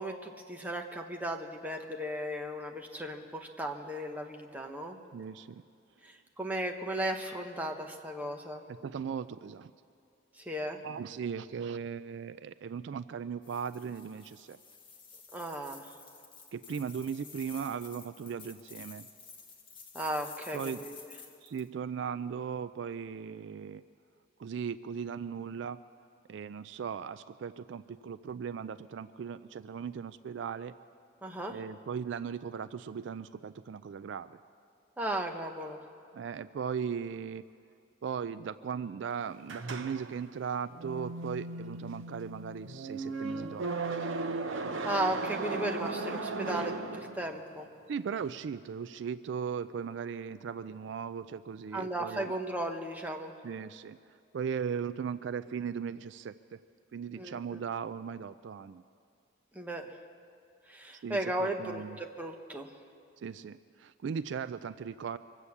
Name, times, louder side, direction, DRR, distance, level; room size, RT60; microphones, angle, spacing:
voice 1, 0.0-5.0 6.0-8.6 10.4-10.8 15.3-15.9 19.9-21.1 31.2-31.6 35.0-35.8 44.6-47.7 51.7-53.3 57.1-57.6 59.5-59.9 60.7-62.7, right 1 dB, 10° right, 2 dB, 0.9 m, -36 dB
voice 2, 5.1-5.6 8.7-9.7 10.7-14.6 16.5-19.1 20.5-20.8 21.4-23.8 24.4-25.8 26.3-30.7 31.5-34.4 36.1-37.4 38.0-43.7 47.9-52.3 53.4-54.0 54.3-56.6 56.9-58.8 61.0-62.0 63.2-65.2, right 7 dB, 65° right, 14 dB, 0.3 m, -38 dB
sound 1, 13.4-21.7, left 5 dB, 25° left, 1.4 m, -51 dB
sound 2, 39.5-47.5, right 3 dB, 80° right, 0.8 m, -37 dB
24.5 x 8.2 x 7.1 m, 2.4 s
head